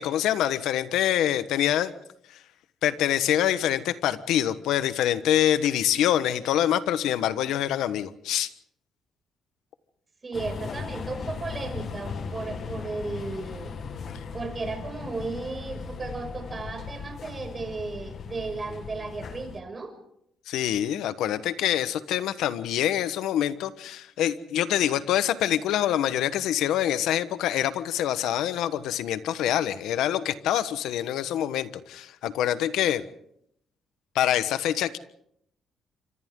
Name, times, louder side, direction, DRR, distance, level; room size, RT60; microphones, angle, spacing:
voice 1, 0.0-1.9 2.8-8.5 20.5-33.0 34.1-35.0, left 11 dB, 85° left, 13 dB, 1.2 m, -25 dB
voice 2, 10.2-13.7 14.3-19.9, right 3 dB, 30° right, 5 dB, 6.4 m, -35 dB
sound 1, 10.3-19.6, left 5 dB, 55° left, 1.8 m, -37 dB
28.5 x 25.5 x 3.8 m, 0.71 s
cardioid pair, 90°, 0 cm